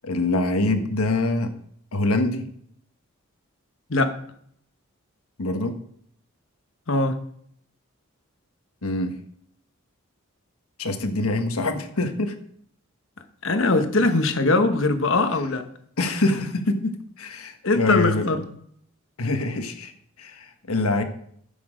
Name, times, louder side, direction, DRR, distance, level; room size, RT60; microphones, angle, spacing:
voice 1, 0.0-1.5 1.9-2.5 5.4-5.7 8.8-9.1 10.8-12.3 14.0-14.1 15.3-15.4 16.0-16.9 17.2-18.3 19.2-19.9 20.2-21.0, left 2 dB, 85° left, 7 dB, 1.3 m, -24 dB
voice 2, 6.9-7.2 13.4-15.7 17.6-18.5, left 2 dB, 60° left, 8 dB, 1.1 m, -21 dB
11.5 x 7.0 x 5.0 m, 0.67 s
head